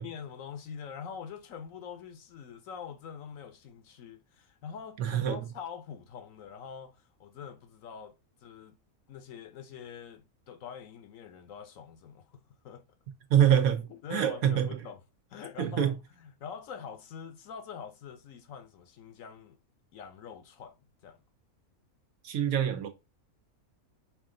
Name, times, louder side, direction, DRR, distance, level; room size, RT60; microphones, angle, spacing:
voice 1, 0.0-8.1 8.4-8.8 9.1-12.8 13.9-15.0 15.3-19.6 19.9-20.8 21.0-21.2, left 7 dB, 65° left, 1.1 m, -44 dB
voice 2, 5.0-5.5 13.3-14.8 15.6-15.9 22.2-22.9, right 9 dB, 75° right, 1.2 m, -25 dB
5.7 x 2.5 x 3.7 m
omnidirectional pair, 1.5 m